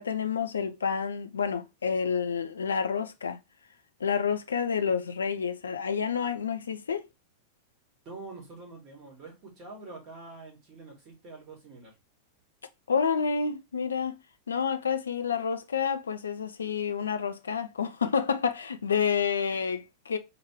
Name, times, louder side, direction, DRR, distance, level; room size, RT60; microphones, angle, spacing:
voice 1, 0.0-3.4 4.0-7.1 12.9-14.2 14.5-20.2, left 6 dB, 70° left, 0.4 m, -29 dB
voice 2, 8.0-12.0, right 3 dB, 35° right, 2.9 m, -45 dB
4.6 x 3.6 x 3.2 m
figure-of-eight pair, 90°, 0 cm